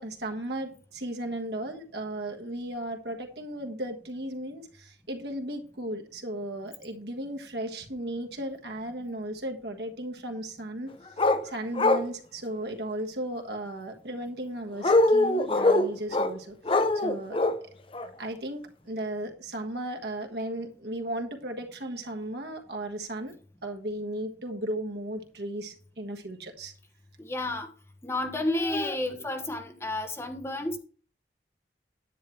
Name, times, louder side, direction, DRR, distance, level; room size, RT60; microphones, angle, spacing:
voice 1, 0.0-10.9 11.4-17.4 18.2-23.3 23.6-26.7, right 1 dB, 70° right, 4 dB, 1.5 m, -35 dB
sound 1, 11.2-11.4 11.8-12.1 14.8-16.3 16.7-17.6 17.9-18.1, left 2 dB, 30° left, 0.6 m, -22 dB
voice 2, 27.2-27.7 28.0-30.8, left 2 dB, 15° left, 5 dB, 1.1 m, -31 dB
10.0 x 9.2 x 3.2 m, 0.41 s
head